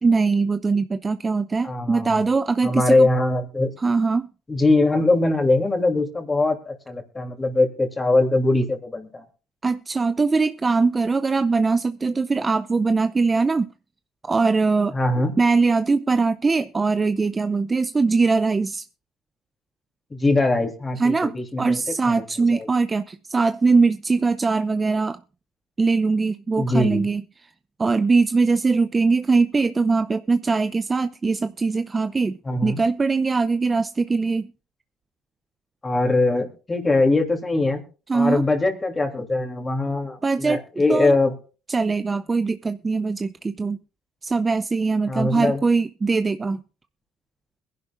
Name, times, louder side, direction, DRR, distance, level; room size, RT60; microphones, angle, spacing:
voice 1, 0.0-3.1 3.8-4.3 9.6-13.7 14.2-15.0 15.4-18.8 21.0-25.2 25.8-27.2 27.8-34.5 38.1-38.5 40.2-40.6 40.9-41.2 41.7-43.8 44.2-46.6, right 4 dB, 25° right, 0.5 m, -21 dB
voice 2, 1.6-2.2 2.6-3.7 4.5-9.2 14.9-15.4 20.1-22.2 22.5-22.7 26.6-27.1 32.4-32.8 35.8-37.8 38.1-41.3 45.1-45.6, left 2 dB, 25° left, 2.9 m, -22 dB
22.0 x 11.0 x 2.5 m
supercardioid pair, 75°, 0 cm